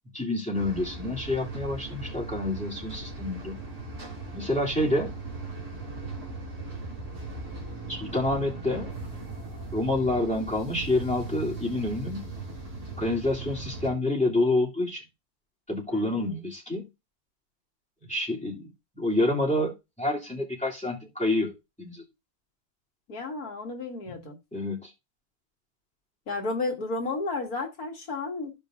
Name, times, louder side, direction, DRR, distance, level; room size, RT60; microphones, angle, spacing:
voice 1, 0.1-3.6 4.3-5.1 7.9-8.9 9.7-12.2 13.0-15.0 15.7-16.9 18.1-18.7 18.9-21.5 21.8-22.0 24.1-24.2 24.5-24.9, left 1 dB, 5° left, 2.7 m, -28 dB
sound 1, 0.5-13.9, right 3 dB, 75° right, 3.3 m, -38 dB
voice 2, 10.1-10.4 15.9-16.4 23.1-24.4 26.3-28.6, left 3 dB, 70° left, 2.3 m, -33 dB
15.0 x 5.3 x 2.5 m
omnidirectional pair, 1.6 m